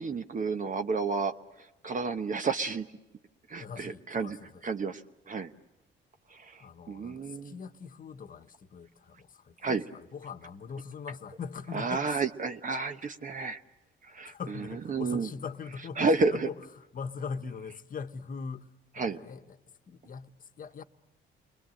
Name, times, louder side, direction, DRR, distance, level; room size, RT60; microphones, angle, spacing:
voice 1, 0.0-1.3 1.8-2.9 3.5-4.4 4.6-5.0 5.3-5.5 6.3-7.5 9.6-9.8 11.7-13.6 14.0-15.3 16.0-16.5 19.0-19.2, right 4 dB, 40° right, 1.0 m, -31 dB
voice 2, 3.6-4.6 6.6-12.2 14.3-19.6 19.9-20.8, left 5 dB, 45° left, 1.1 m, -41 dB
29.5 x 21.5 x 7.7 m
cardioid pair, 90°, 20 cm